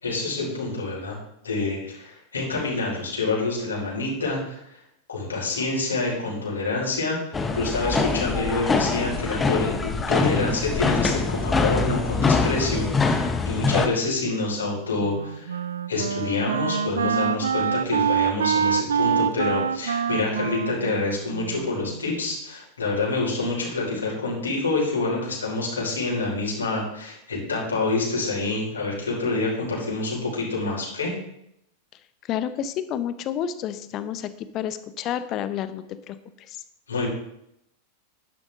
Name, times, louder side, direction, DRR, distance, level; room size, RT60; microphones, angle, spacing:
voice 1, 0.0-1.2 1.4-4.6 5.1-15.6 15.9-31.1 36.9-37.1, left 3 dB, 70° left, -3 dB, 5.3 m, -27 dB
sound 1, 7.3-13.9, left 4 dB, 15° left, 1.2 m, -24 dB
Wind instrument woodwind instrument, 15.0-22.2, right 7 dB, 65° right, 0.4 m, -26 dB
voice 2, 32.3-36.2 36.5-36.6, left 10 dB, 35° left, 12 dB, 1.0 m, -30 dB
12.0 x 11.0 x 3.9 m, 0.78 s
figure-of-eight pair, 90°, 0 cm